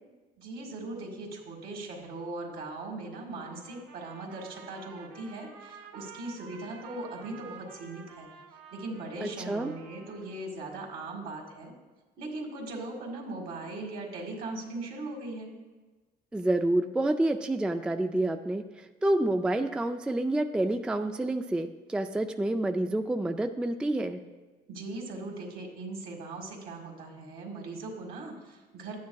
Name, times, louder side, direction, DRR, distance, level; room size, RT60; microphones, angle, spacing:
voice 1, 0.4-8.3 8.7-11.7 12.2-15.5 24.7-29.0, right 2 dB, 65° right, 1 dB, 1.9 m, -39 dB
Trumpet, 3.4-10.5, right 6 dB, 85° right, 0.9 m, -50 dB
voice 2, 9.2-9.7 16.3-24.2, right 1 dB, 5° right, 6 dB, 0.3 m, -28 dB
12.0 x 9.4 x 2.3 m, 1.3 s
cardioid pair, 110°, 17 cm